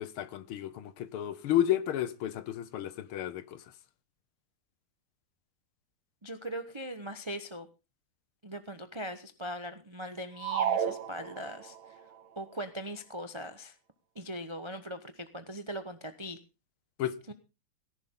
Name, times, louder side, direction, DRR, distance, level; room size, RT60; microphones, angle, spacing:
voice 1, 0.0-3.6 17.0-17.3, left 11 dB, 80° left, 1.7 m, -32 dB
voice 2, 6.2-7.7 8.4-11.7 12.4-13.8 14.1-16.4 17.3-17.4, equal, 40° right, 0.4 m, -40 dB
sound 1, 10.4-11.9, right 9 dB, 70° right, 1.8 m, -32 dB
17.5 x 11.0 x 3.7 m
omnidirectional pair, 2.3 m